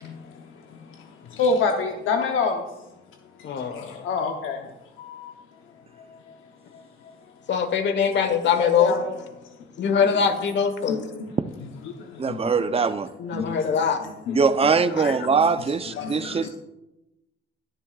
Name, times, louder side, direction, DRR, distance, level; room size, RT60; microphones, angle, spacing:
voice 1, 1.4-2.6 3.7-4.6 5.0-5.3 8.6-9.2 10.9-11.0 12.3-12.4 13.3-13.5 14.3-14.4 16.0-16.5, left 4 dB, 85° left, 3 dB, 0.9 m, -26 dB
voice 2, 3.4-4.0 7.5-9.0 9.8-11.0 13.2-14.0 15.0-15.1, left 6 dB, 65° left, 8 dB, 1.3 m, -23 dB
voice 3, 12.2-13.1 14.3-16.5, right 5 dB, 30° right, 11 dB, 0.7 m, -22 dB
20.5 x 7.5 x 2.4 m, 0.94 s
cardioid pair, 90°, 20 cm